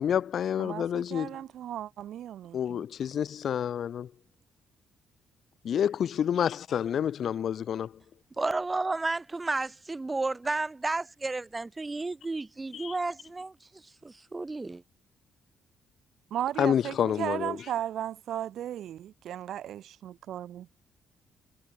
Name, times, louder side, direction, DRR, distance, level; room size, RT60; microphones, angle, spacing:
voice 1, 0.0-1.3 2.5-4.1 5.6-7.9 12.7-12.9 16.6-17.6, left 9 dB, 60° left, 0.5 m, -28 dB
voice 2, 0.6-2.9 16.3-20.7, right 11 dB, 70° right, 6.4 m, -35 dB
voice 3, 8.4-14.8, right 3 dB, 20° right, 3.8 m, -32 dB
cardioid pair, 90°, 0 cm